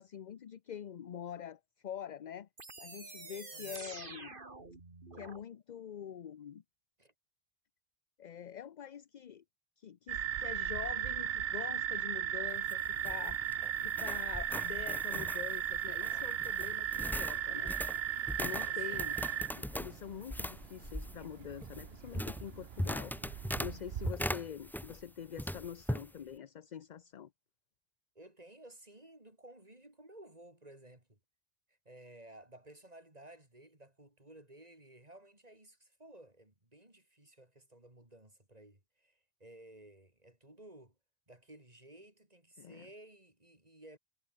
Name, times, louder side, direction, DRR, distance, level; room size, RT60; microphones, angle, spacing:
voice 1, 0.0-2.5 2.8-4.4 5.1-6.6 8.2-9.4 9.8-13.4 13.8-17.7 18.3-19.2 19.5-27.3 42.6-42.9, left 9 dB, 50° left, 0.7 m, -45 dB
sound 1, 2.6-5.4, right 3 dB, 55° right, 2.7 m, -47 dB
sound 2, 10.1-24.1, right 10 dB, 80° right, 1.0 m, -37 dB
sound 3, 12.5-25.1 25.4-26.1, equal, ahead, 0.9 m, -40 dB
voice 2, 18.6-19.1 28.1-31.2 31.8-40.9 41.3-44.0, right 1 dB, 40° right, 4.9 m, -56 dB
omnidirectional pair, 1.0 m